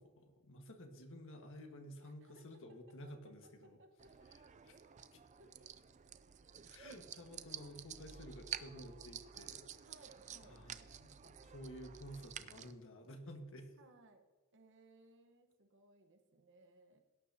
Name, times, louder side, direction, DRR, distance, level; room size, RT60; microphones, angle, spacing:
voice 1, 0.0-3.8 4.3-4.7 5.1-5.2 6.7-9.6 10.4-13.8, equal, 60° left, 4 dB, 1.6 m, -52 dB
voice 2, 2.0-4.5 5.0-5.1 5.4-5.7 9.8-10.6 13.8-14.2 14.5-17.0, right 2 dB, 55° right, 6 dB, 1.2 m, -64 dB
sound 1, 4.0-12.7, right 9 dB, 35° right, 0.4 m, -51 dB
17.5 x 9.6 x 2.9 m, 1.2 s
head